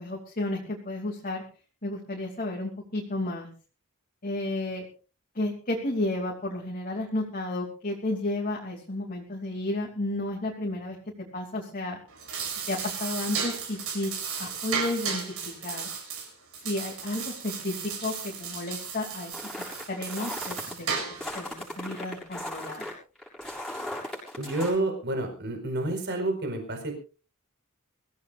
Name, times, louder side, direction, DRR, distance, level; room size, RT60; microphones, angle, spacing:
voice 1, 0.0-1.4 1.8-3.5 4.2-4.8 5.3-11.0 11.3-12.0 12.7-14.1 14.4-15.9 16.6-19.3 19.9-22.9, left 2 dB, 40° left, -1 dB, 3.0 m, -32 dB
sound 1, 12.1-21.4, right 6 dB, 70° right, 6.9 m, -35 dB
sound 2, 19.3-20.7 21.2-24.8, left 1 dB, ahead, 7.1 m, -37 dB
voice 2, 24.4-27.0, right 2 dB, 50° right, 4 dB, 4.9 m, -29 dB
24.5 x 16.0 x 2.6 m, 0.36 s
head